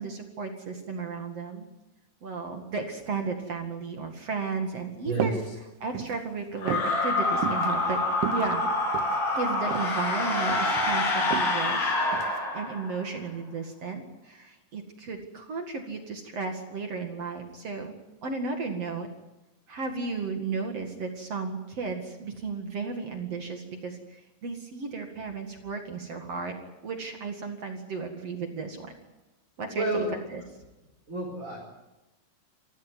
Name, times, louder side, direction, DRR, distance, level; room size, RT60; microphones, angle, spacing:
voice 1, 0.0-1.7 2.2-8.0 8.3-8.6 9.3-18.0 18.2-19.1 19.7-26.6 26.8-28.9 29.6-30.4, right 4 dB, 45° right, 4 dB, 2.2 m, -34 dB
sound 1, 5.1-5.5 5.8-6.2 6.7-6.9 7.4-7.7 8.1-9.2 9.7-9.9 10.3-10.8 11.3-11.5 12.1-12.4, right 9 dB, 85° right, 3.9 m, -32 dB
sound 2, 6.6-13.0, left 2 dB, 75° left, 9.9 m, -27 dB
voice 2, 29.7-30.1 31.1-31.6, right 2 dB, 15° right, -2 dB, 4.9 m, -29 dB
27.0 x 15.0 x 9.4 m, 1.0 s
omnidirectional pair, 5.4 m